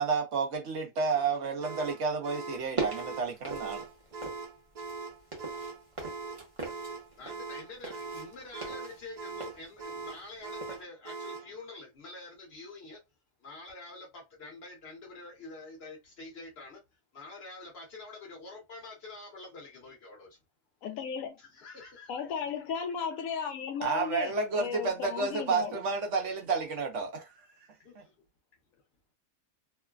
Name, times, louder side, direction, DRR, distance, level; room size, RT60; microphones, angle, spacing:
voice 1, 0.0-3.9 23.8-27.3 28.0-28.1, right 4 dB, 65° right, 1.0 m, -31 dB
sound 1, 1.6-11.5, right 4 dB, 90° right, 0.3 m, -41 dB
sound 2, 2.5-4.5 4.8-10.3 10.6-10.8, right 3 dB, 30° right, 0.8 m, -40 dB
voice 2, 7.2-13.0 13.4-16.8 17.1-20.4 21.4-22.3 27.8-28.2, left 3 dB, 50° left, 1.2 m, -47 dB
voice 3, 20.8-21.3 22.1-25.8, left 7 dB, 75° left, 1.0 m, -35 dB
3.0 x 2.1 x 2.3 m
omnidirectional pair, 1.5 m